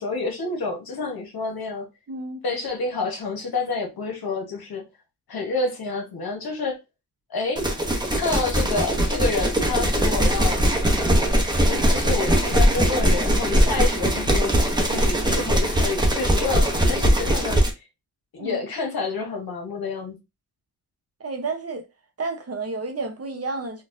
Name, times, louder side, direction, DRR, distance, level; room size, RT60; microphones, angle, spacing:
voice 1, 0.0-1.9 2.4-4.9 5.3-6.8 7.3-7.6 8.1-10.6 11.0-11.3 11.6-17.8 18.3-20.2, left 3 dB, 65° left, 1.1 m, -29 dB
voice 2, 2.1-2.4 18.4-18.6 21.2-21.8 22.2-23.8, right 3 dB, 40° right, 0.8 m, -31 dB
sound 1, 7.6-17.7, equal, 10° right, 0.7 m, -21 dB
4.0 x 2.4 x 2.5 m
wide cardioid pair, 100°, 38 cm